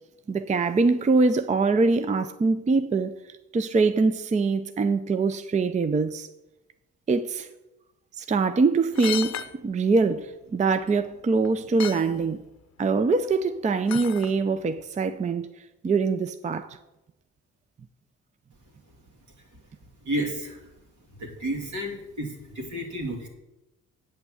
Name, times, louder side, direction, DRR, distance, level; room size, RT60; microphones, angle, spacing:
voice 1, 0.3-3.2 3.5-6.3 7.1-7.5 8.2-9.4 9.6-12.4 12.8-15.5 15.8-16.8, right 4 dB, 25° right, 0.5 m, -23 dB
sound 1, 8.9-9.5 10.8-10.9 11.4-11.5 11.8-12.0 13.9-14.3 14.8-14.9, left 11 dB, 60° left, 0.6 m, -33 dB
voice 2, 20.0-20.7 21.2-23.3, right 1 dB, 70° right, 2.6 m, -31 dB
8.6 x 5.7 x 7.7 m
cardioid pair, 90°, 30 cm